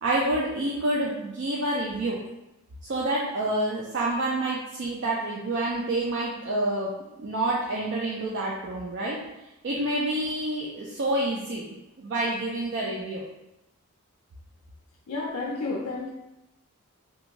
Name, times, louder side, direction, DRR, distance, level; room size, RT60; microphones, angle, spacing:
voice 1, 0.0-2.2 2.8-9.2 9.6-11.6 12.0-13.2, right 1 dB, 55° right, -5 dB, 0.4 m, -28 dB
voice 2, 15.1-16.1, left 3 dB, 80° left, -1 dB, 0.4 m, -31 dB
2.5 x 2.3 x 2.9 m, 0.92 s
head